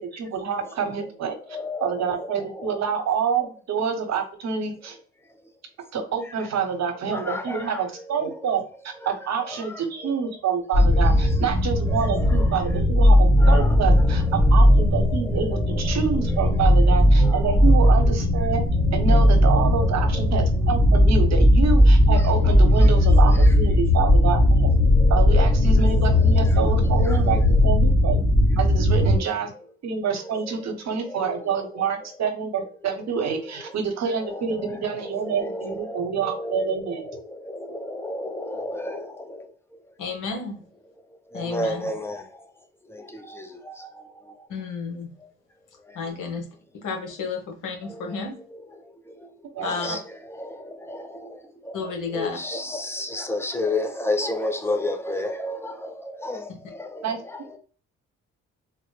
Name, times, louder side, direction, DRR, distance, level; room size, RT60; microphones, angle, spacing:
voice 1, 0.0-1.4 1.8-5.0 5.9-18.6 18.9-24.7 25.1-28.2 28.6-29.5 29.8-37.1 49.5-50.0 57.0-57.2, right 6 dB, 60° right, 1.0 m, -27 dB
voice 2, 1.3-2.8 6.3-6.4 7.1-8.6 9.0-10.2 10.9-11.4 11.8-13.0 13.4-16.0 16.3-16.7 17.2-17.7 18.4-18.5 18.9-21.0 22.2-22.3 22.8-23.5 24.8-27.3 29.2-29.3 30.2-30.7 31.0-31.8 33.4-33.5 34.0-39.8 40.3-40.4 41.1-42.5 42.9-44.5 45.2-45.3 45.8-46.1 47.8-57.6, left 1 dB, 10° left, 0.7 m, -34 dB
Sci-Fi Horror Ambience, 10.7-29.2, left 1 dB, 45° left, 1.4 m, -17 dB
voice 3, 40.0-40.6 41.3-41.8 44.5-45.1 45.9-46.5 46.8-48.4 49.6-50.0 51.7-52.3, left 4 dB, 90° left, 1.2 m, -31 dB
3.8 x 2.1 x 3.2 m
cardioid pair, 90°, 30 cm